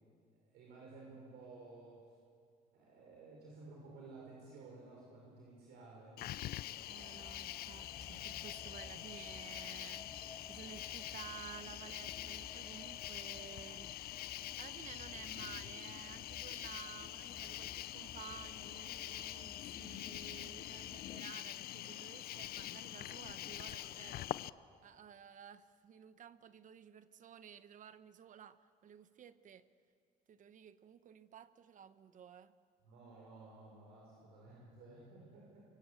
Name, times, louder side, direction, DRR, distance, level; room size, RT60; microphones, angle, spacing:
voice 1, 0.5-2.1 2.7-6.2 32.8-35.6, right 3 dB, 75° right, -3 dB, 6.0 m, -55 dB
Cricket, 6.2-24.5, left 14 dB, 65° left, 0.6 m, -45 dB
voice 2, 6.9-14.0 14.4-24.3 24.8-29.6 30.3-32.5, right 8 dB, 50° right, 13 dB, 1.1 m, -54 dB
sound 1, 7.0-21.2, left 4 dB, 20° left, 0.9 m, -56 dB
sound 2, 7.5-8.9 9.9-12.5, left 2 dB, 5° right, 5.6 m, -71 dB
24.0 x 23.5 x 8.5 m, 2.3 s
cardioid pair, 110°, 17 cm